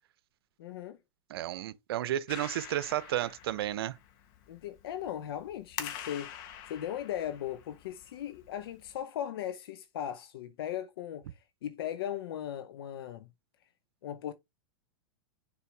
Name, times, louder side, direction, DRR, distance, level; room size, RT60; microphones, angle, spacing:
voice 1, 0.6-1.0 4.5-11.3 11.6-13.3 14.0-14.3, left 10 dB, 70° left, 0.7 m, -38 dB
voice 2, 1.3-3.9, right 12 dB, 70° right, 0.7 m, -32 dB
Clapping, 2.3-9.0, left 10 dB, 55° left, 1.3 m, -46 dB
6.9 x 4.6 x 3.3 m
hypercardioid pair, 120°, 13 cm